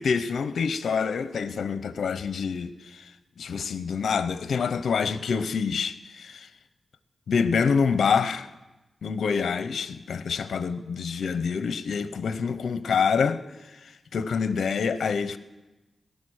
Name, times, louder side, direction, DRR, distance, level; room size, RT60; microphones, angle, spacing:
voice 1, 0.0-3.1 3.4-6.5 7.3-8.5 9.0-13.4 13.8-15.4, left 6 dB, 85° left, 0.7 m, -26 dB
18.5 x 11.5 x 6.4 m
cardioid pair, 70°, 0 cm